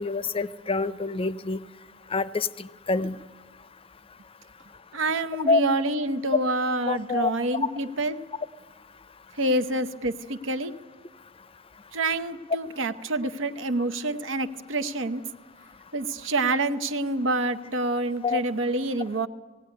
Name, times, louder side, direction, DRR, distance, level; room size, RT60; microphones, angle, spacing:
voice 1, 0.0-1.6 2.1-3.2 5.5-5.6 6.9-7.3 18.2-18.4, left 3 dB, 30° left, 16 dB, 0.5 m, -26 dB
voice 2, 4.9-8.2 9.4-10.7 11.9-15.2 15.9-19.3, right 2 dB, 85° right, 9 dB, 0.8 m, -27 dB
17.5 x 17.0 x 9.6 m, 1.4 s
head